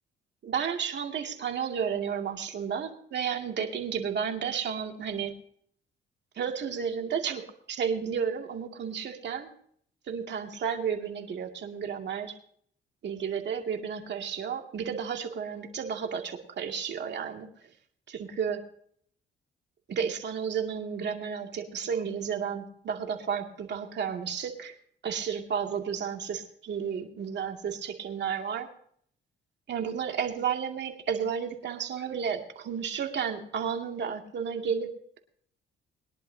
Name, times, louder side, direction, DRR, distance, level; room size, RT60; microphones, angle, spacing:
voice 1, 0.4-5.3 6.4-9.5 10.1-12.3 13.0-17.5 18.1-18.6 19.9-24.7 25.0-28.7 29.7-34.9, right 7 dB, 60° right, 3 dB, 2.4 m, -32 dB
22.0 x 11.0 x 2.8 m, 0.63 s
cardioid pair, 90°, 20 cm